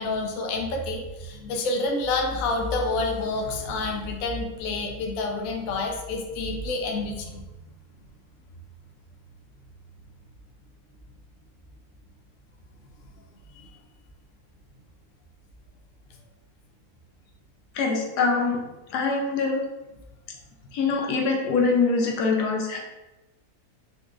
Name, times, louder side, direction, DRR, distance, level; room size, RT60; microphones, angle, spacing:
voice 1, 0.0-7.4, left 3 dB, 70° left, 2 dB, 0.9 m, -28 dB
voice 2, 17.7-18.6 18.9-19.6 20.7-22.8, left 4 dB, 90° left, 0 dB, 1.2 m, -24 dB
4.0 x 2.3 x 2.4 m, 1.0 s
omnidirectional pair, 1.7 m